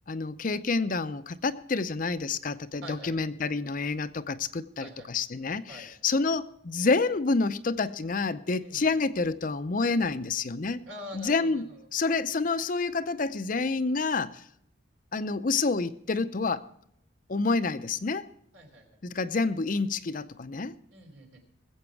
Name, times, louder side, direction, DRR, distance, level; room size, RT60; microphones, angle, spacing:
voice 1, 0.1-10.8 11.1-14.4 15.1-16.7 17.3-18.3 19.0-20.7, left 3 dB, 40° left, 0.6 m, -28 dB
voice 2, 2.8-3.3 4.8-5.1 5.7-5.9 8.6-8.9 10.8-11.8 18.5-19.0 20.9-21.4, equal, 75° right, 3.1 m, -45 dB
20.0 x 8.0 x 4.7 m
head